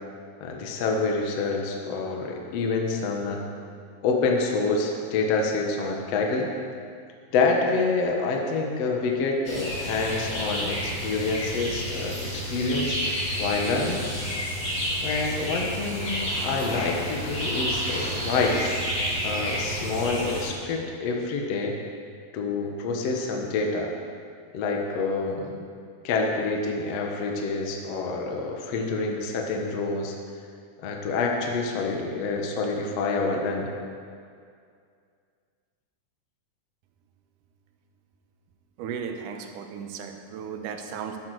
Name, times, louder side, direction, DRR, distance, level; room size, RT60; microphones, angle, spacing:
voice 1, 0.4-3.5 4.0-6.5 7.3-13.0 13.4-14.1 14.5-14.6 15.0-18.6 19.2-21.8 22.3-23.9 24.5-25.6 26.0-30.1 30.8-33.7, left 3 dB, 60° left, 1 dB, 1.9 m, -27 dB
sound 1, 9.5-20.5, equal, 35° left, 4.5 m, -30 dB
voice 2, 38.8-41.2, right 7 dB, 70° right, 5 dB, 2.3 m, -35 dB
13.5 x 12.0 x 4.8 m, 2.2 s
omnidirectional pair, 4.2 m